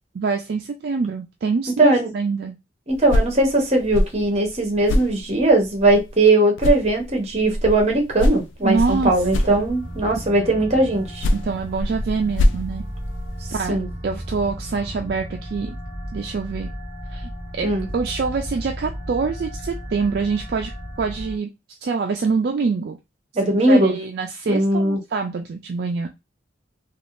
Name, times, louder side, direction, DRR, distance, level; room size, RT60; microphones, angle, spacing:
voice 1, 0.2-2.6 8.6-9.1 9.5-9.6 11.3-12.8 13.5-13.8 14.0-15.7 16.1-16.7 17.1-17.7 17.9-20.7 21.0-21.5 21.8-23.0 23.7-26.1, right 4 dB, 55° right, 0.3 m, -25 dB
voice 2, 1.8-2.1 2.9-11.2 13.7-13.9 17.6-17.9 23.3-23.9 24.5-25.0, right 2 dB, 35° right, 0.9 m, -19 dB
sound 1, 2.9-6.3 6.6-10.1 10.9-13.6, left 1 dB, 75° left, 0.4 m, -25 dB
sound 2, 8.8-21.4, equal, 50° left, 1.2 m, -34 dB
3.4 x 2.4 x 2.5 m
head